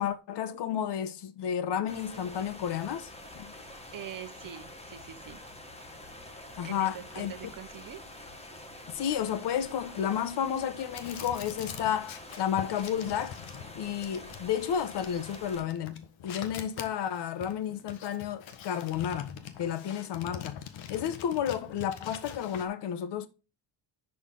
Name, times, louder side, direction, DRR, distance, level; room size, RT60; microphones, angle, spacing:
voice 1, 0.0-3.5 6.6-7.3 8.9-13.4 13.8-19.3 19.6-20.6 20.9-23.3, left 9 dB, 65° left, 1.1 m, -32 dB
sound 1, 1.9-15.6, left 1 dB, 15° left, 1.5 m, -47 dB
voice 2, 3.9-5.4 6.6-8.0, right 9 dB, 45° right, 1.2 m, -43 dB
sound 2, 10.9-22.7, left 9 dB, 80° left, 1.6 m, -44 dB
11.0 x 5.1 x 3.9 m
cardioid pair, 155°, 46 cm